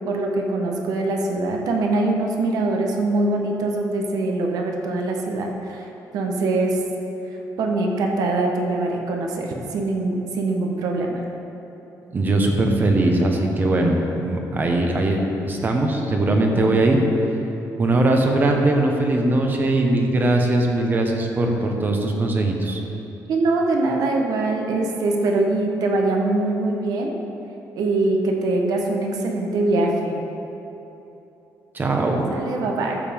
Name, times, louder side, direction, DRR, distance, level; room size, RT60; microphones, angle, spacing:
voice 1, 0.1-5.9 6.1-6.8 7.6-11.2 13.2-13.3 16.6-16.7 23.3-27.1 27.8-30.2 32.3-33.0, right 2 dB, 70° right, 1 dB, 1.1 m, -23 dB
voice 2, 12.1-17.0 17.8-22.8 31.7-32.3, right 2 dB, 30° right, 2 dB, 1.1 m, -20 dB
13.5 x 7.3 x 3.6 m, 3.0 s
cardioid pair, 140°, 7 cm